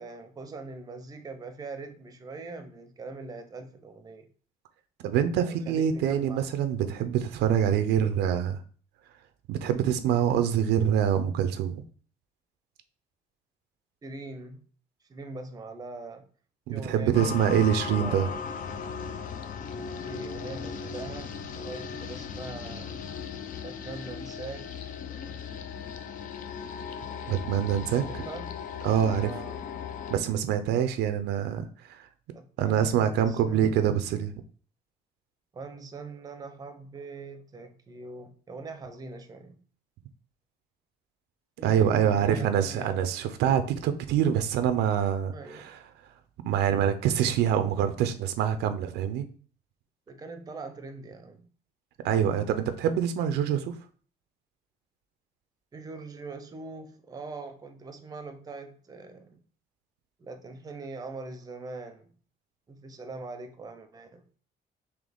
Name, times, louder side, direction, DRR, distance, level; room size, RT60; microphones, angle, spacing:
voice 1, 0.0-4.3 5.4-6.5 14.0-14.6 15.1-16.3 16.7-18.5 19.7-22.9 23.6-24.7 28.0-28.6 29.2-29.6 32.3-33.8 35.5-39.6 41.6-43.1 45.3-45.7 50.1-51.5 55.7-59.4 60.2-62.2 62.7-64.2, right 3 dB, 20° right, 7 dB, 0.6 m, -42 dB
voice 2, 5.0-8.6 9.5-11.8 16.7-18.3 27.3-28.2 28.8-29.3 30.1-32.1 32.6-34.3 41.6-45.8 46.4-49.3 52.0-53.8, right 9 dB, 80° right, 9 dB, 0.5 m, -25 dB
sound 1, 17.1-30.2, left 6 dB, 50° left, 0.5 m, -37 dB
3.9 x 2.8 x 3.4 m, 0.43 s
cardioid pair, 110°, 17 cm